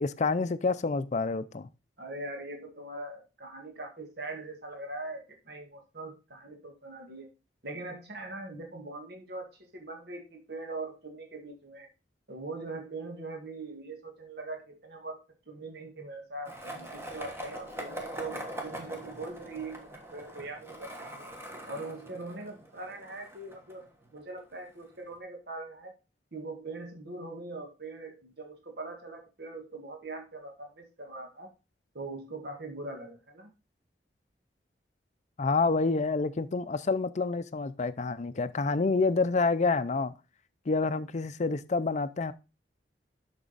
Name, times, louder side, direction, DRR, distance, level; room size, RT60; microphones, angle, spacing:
voice 1, 0.0-1.7 35.4-40.1 40.7-42.3, left 3 dB, 40° left, 0.5 m, -28 dB
voice 2, 2.0-7.3 7.6-11.9 12.3-15.2 15.5-20.9 21.2-21.3 21.7-25.9 26.3-31.5 31.9-33.5, right 2 dB, 60° right, 1.8 m, -41 dB
Skateboard, 16.5-24.4, right 1 dB, 15° right, 1.5 m, -42 dB
7.4 x 6.0 x 4.0 m
head